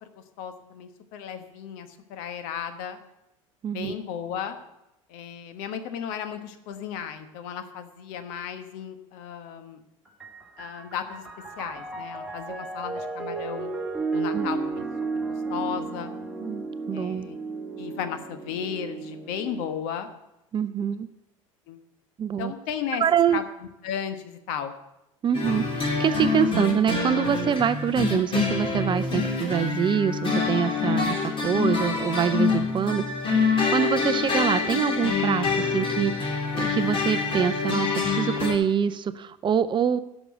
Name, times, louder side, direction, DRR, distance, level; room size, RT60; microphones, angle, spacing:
voice 1, 0.0-3.0 3.7-4.6 5.1-9.8 10.6-11.2 11.6-13.7 14.1-14.9 15.1-16.1 16.9-17.4 17.8-20.1 21.7-21.8 22.4-23.0 23.3-23.4 23.8-24.7, left 8 dB, 60° left, 8 dB, 1.3 m, -35 dB
voice 2, 3.6-3.9 14.3-14.5 16.4-17.3 20.5-21.1 22.2-22.5 23.0-23.4 25.2-40.0, right 8 dB, 30° right, 14 dB, 0.5 m, -25 dB
Piano, 10.1-19.7, right 3 dB, 5° right, 2.0 m, -33 dB
sound 1, 25.3-38.5, left 4 dB, 30° left, 3.2 m, -26 dB
11.0 x 6.2 x 8.2 m, 0.90 s
figure-of-eight pair, 75°, 17 cm